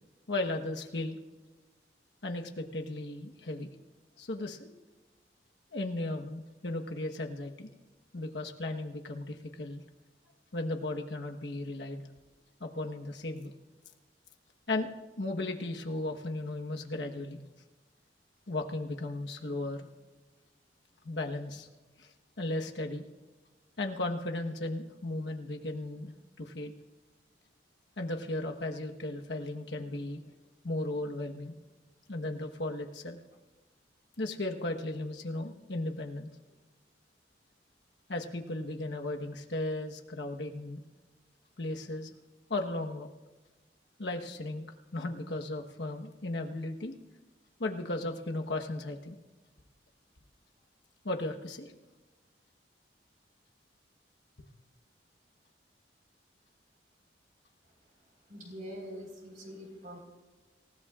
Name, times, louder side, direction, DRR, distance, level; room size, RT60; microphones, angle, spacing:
voice 1, 0.3-1.2 2.2-3.7 4.2-4.7 5.7-7.7 8.1-9.8 10.5-12.0 12.6-13.5 14.7-17.4 18.5-19.9 21.0-21.7 22.0-22.1 22.4-23.1 23.8-26.1 26.4-26.7 28.0-30.2 30.6-31.6 32.1-33.2 34.2-36.3 38.1-40.8 41.6-42.1 42.5-43.1 44.0-44.7 44.9-46.9 47.6-49.2 51.0-51.7, left 2 dB, 75° left, 3 dB, 1.2 m, -35 dB
voice 2, 58.3-60.0, equal, 50° right, 1 dB, 4.4 m, -44 dB
27.0 x 16.5 x 2.4 m, 1.2 s
head